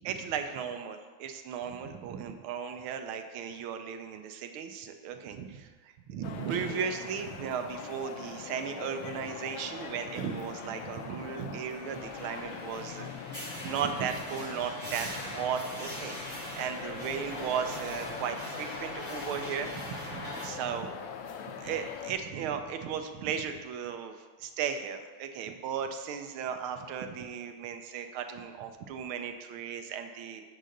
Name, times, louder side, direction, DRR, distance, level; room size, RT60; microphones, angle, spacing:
voice 1, 0.0-13.1 13.6-16.2 16.6-21.0 21.6-30.4, right 7 dB, 90° right, 7 dB, 1.5 m, -36 dB
sound 1, 6.2-22.1, left 7 dB, 75° left, 1.4 m, -42 dB
sound 2, 11.9-20.5, equal, 5° right, 2.2 m, -42 dB
7.9 x 3.7 x 6.5 m, 1.4 s
omnidirectional pair, 2.3 m